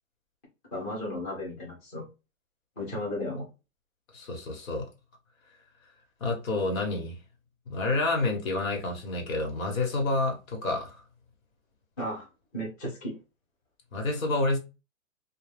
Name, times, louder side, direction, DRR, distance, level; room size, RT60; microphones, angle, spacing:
voice 1, 0.7-2.1 2.8-3.5 12.0-12.3 12.5-13.2, left 1 dB, 10° left, 0.5 m, -34 dB
voice 2, 4.1-4.9 6.2-7.2 7.7-11.0 13.9-14.6, left 2 dB, 85° left, 1.2 m, -29 dB
2.5 x 2.2 x 3.3 m
hypercardioid pair, 155°, 40 cm